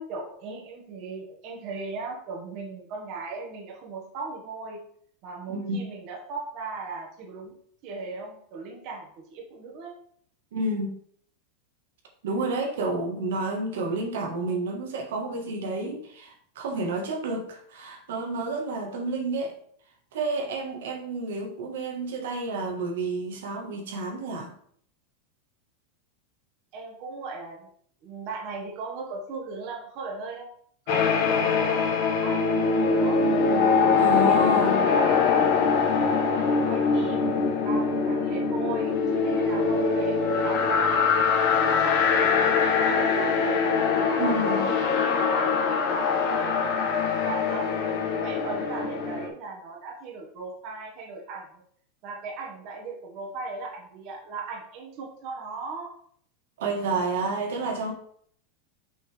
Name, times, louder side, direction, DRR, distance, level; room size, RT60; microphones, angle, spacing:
voice 1, 0.0-4.8 5.2-7.5 7.8-9.9 26.7-27.7 28.0-30.5 30.9-31.8 32.2-33.3 34.1-35.2 35.8-41.0 41.5-43.7 44.1-46.6 47.2-51.6 52.0-55.9, right 3 dB, 40° right, -1 dB, 1.5 m, -38 dB
voice 2, 5.5-5.8 10.5-11.0 12.2-19.5 20.1-24.5 34.0-34.8 44.2-44.7 56.6-57.9, right 2 dB, 90° right, 1 dB, 1.4 m, -30 dB
dark ambient guitar pad, 30.9-49.3, left 5 dB, 45° left, 1.1 m, -23 dB
5.9 x 5.5 x 3.4 m, 0.63 s
supercardioid pair, 170°, 0 cm